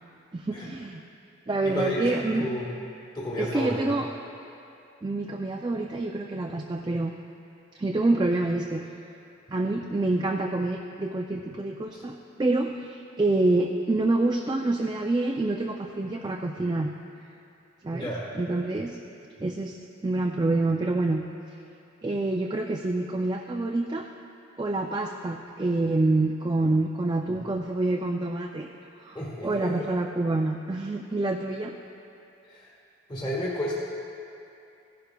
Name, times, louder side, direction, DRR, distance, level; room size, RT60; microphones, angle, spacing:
voice 1, 0.3-1.0 1.5-2.5 3.4-4.1 5.0-7.1 7.8-8.8 9.5-16.9 17.8-19.0 19.4-19.8 20.0-21.2 22.0-24.1 24.6-28.7 29.0-31.7, right 2 dB, 20° right, 2 dB, 0.3 m, -27 dB
voice 2, 1.6-2.7 3.1-4.0 17.9-18.2 27.3-27.4 29.1-29.7 32.4-32.7 33.1-33.7, equal, 25° left, -5 dB, 1.5 m, -32 dB
15.5 x 11.5 x 2.3 m, 2.7 s
head